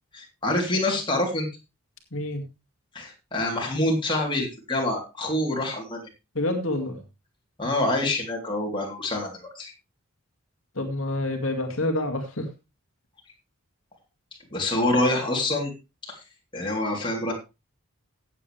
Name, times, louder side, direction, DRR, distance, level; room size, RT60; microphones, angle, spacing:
voice 1, 0.1-1.5 2.9-6.1 7.6-9.7 14.5-15.7 16.0-16.2 16.5-17.3, left 1 dB, 20° left, -1 dB, 3.4 m, -26 dB
voice 2, 2.1-2.4 6.3-7.0 10.7-12.5, left 1 dB, 65° left, 4 dB, 2.3 m, -27 dB
16.0 x 8.4 x 3.3 m, 0.28 s
head